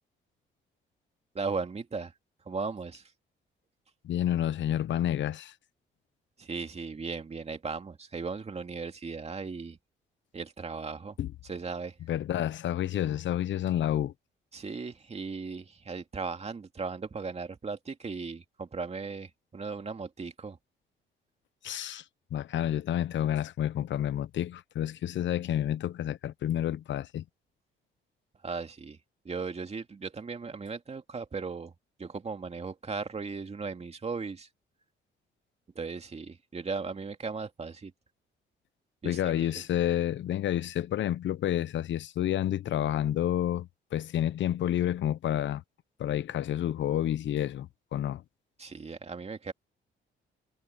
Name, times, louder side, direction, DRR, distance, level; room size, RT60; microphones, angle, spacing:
voice 1, 1.3-2.1 2.5-3.0 6.4-9.8 10.3-11.2 11.4-12.0 14.5-20.6 28.4-29.0 29.2-31.7 32.0-34.5 35.8-37.9 39.0-39.2 39.5-39.6 48.6-49.5, right 4 dB, 30° right, 2.5 m, -37 dB
voice 2, 4.0-5.5 11.2-11.3 12.1-14.1 21.6-22.0 22.3-27.2 39.0-45.6 46.0-48.2, left 11 dB, 70° left, 0.9 m, -29 dB
cardioid pair, 90°, 20 cm